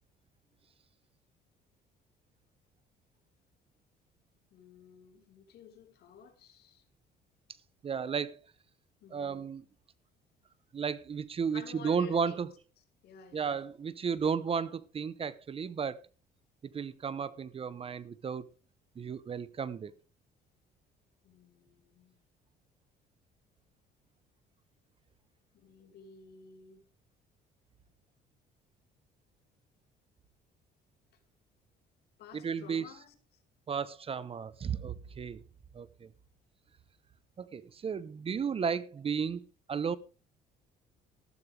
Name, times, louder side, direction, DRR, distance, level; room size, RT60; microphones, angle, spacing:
voice 1, 4.5-6.8 9.0-9.4 11.5-12.4 13.0-13.6 21.2-22.2 25.5-26.8 32.2-33.4 35.2-35.5, left 7 dB, 70° left, 2.6 m, -53 dB
voice 2, 7.8-8.4 9.1-9.6 10.7-12.5 13.3-16.0 16.7-18.5 19.0-19.9 32.3-32.9 33.7-35.4 35.7-36.1 37.4-40.0, right 6 dB, 35° right, 0.9 m, -34 dB
13.5 x 12.5 x 3.4 m
cardioid pair, 110°, 17 cm